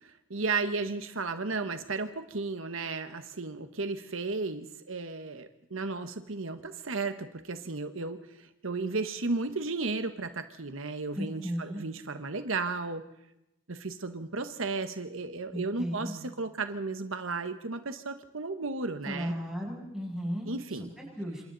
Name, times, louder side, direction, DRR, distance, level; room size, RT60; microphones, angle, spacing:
voice 1, 0.0-13.0 13.7-19.4 20.4-20.9, right 3 dB, 75° right, 8 dB, 1.3 m, -34 dB
voice 2, 11.1-11.8 15.5-16.1 19.1-20.5 21.0-21.4, equal, 5° right, -3 dB, 7.8 m, -35 dB
28.0 x 26.5 x 4.1 m, 0.90 s
head